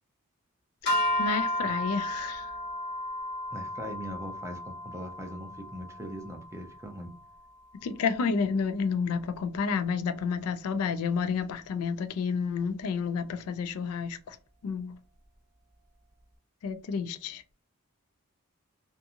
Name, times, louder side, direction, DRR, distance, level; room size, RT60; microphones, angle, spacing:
sound 1, 0.9-7.2, left 1 dB, 50° left, 1.1 m, -33 dB
voice 1, 1.2-2.5 7.8-14.4 14.6-15.0 16.6-17.4, left 5 dB, 75° left, 0.3 m, -30 dB
voice 2, 3.5-7.1, equal, 15° right, 0.4 m, -40 dB
2.6 x 2.4 x 2.7 m
head